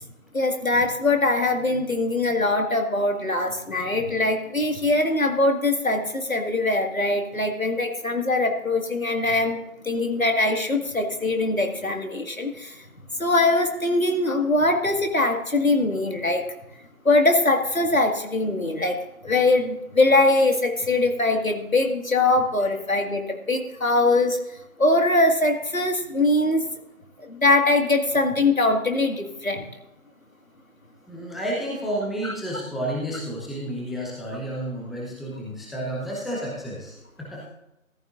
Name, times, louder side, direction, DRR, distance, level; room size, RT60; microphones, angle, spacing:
voice 1, 0.3-9.6 9.8-12.8 13.2-16.4 17.1-24.4 24.8-26.7 27.3-29.6 32.2-32.3, left 2 dB, 75° left, 4 dB, 2.0 m, -22 dB
voice 2, 31.1-37.4, right 1 dB, ahead, -4 dB, 0.8 m, -31 dB
14.0 x 12.0 x 2.5 m, 0.87 s
figure-of-eight pair, 175°, 41 cm